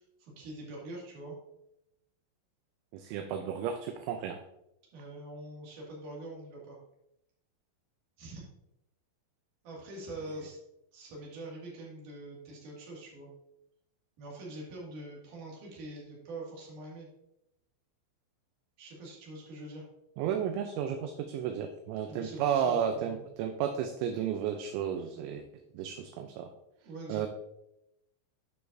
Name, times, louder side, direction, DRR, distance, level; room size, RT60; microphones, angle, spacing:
voice 1, 0.0-1.4 4.9-6.8 8.2-8.4 9.6-10.6 10.9-13.3 14.2-17.1 18.8-19.8 22.1-23.2 26.8-27.3, right 2 dB, 50° right, -3 dB, 3.1 m, -44 dB
voice 2, 2.9-4.4 20.2-25.5 25.7-26.5 27.1-27.3, right 8 dB, 80° right, 6 dB, 2.8 m, -33 dB
9.7 x 6.8 x 2.6 m, 0.84 s
omnidirectional pair, 5.7 m